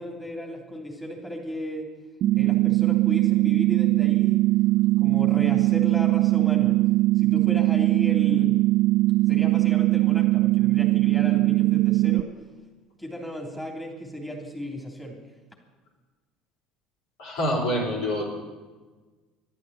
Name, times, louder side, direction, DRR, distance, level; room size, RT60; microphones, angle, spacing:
voice 1, 0.0-1.9 2.3-4.5 5.0-6.8 7.1-8.5 9.3-12.3 13.0-15.3, equal, 5° left, 0 dB, 3.1 m, -35 dB
sound 1, 2.2-12.2, right 18 dB, 55° right, 0.5 m, -21 dB
voice 2, 17.2-18.3, equal, 65° left, -2 dB, 4.6 m, -26 dB
12.5 x 11.5 x 8.0 m, 1.3 s
figure-of-eight pair, 65°, 0 cm